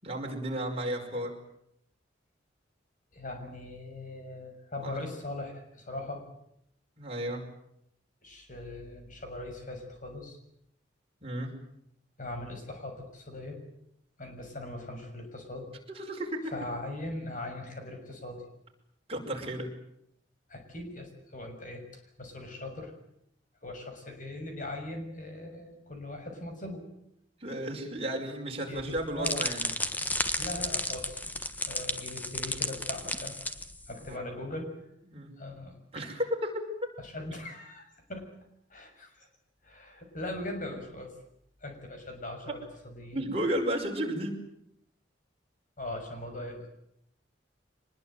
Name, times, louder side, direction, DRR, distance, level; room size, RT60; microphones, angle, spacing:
voice 1, 0.0-1.3 4.8-4.9 7.0-7.5 11.2-11.6 15.9-16.5 19.1-19.8 27.4-29.7 34.1-34.3 35.1-35.3 35.9-36.7 43.1-44.4, right 1 dB, 30° right, 1 dB, 5.5 m, -33 dB
voice 2, 3.1-6.2 8.2-10.4 12.2-13.6 14.2-15.7 16.5-18.4 20.5-21.8 22.2-22.9 23.6-26.9 28.7-29.5 30.4-33.4 33.9-34.7 35.4-36.1 37.0-37.8 38.1-38.3 38.7-39.3 39.6-41.1 41.6-43.2 45.8-46.7, left 2 dB, 45° left, 4 dB, 6.6 m, -40 dB
sound 1, 28.8-34.1, left 2 dB, 10° left, 1.3 m, -33 dB
24.5 x 21.0 x 9.3 m, 0.75 s
head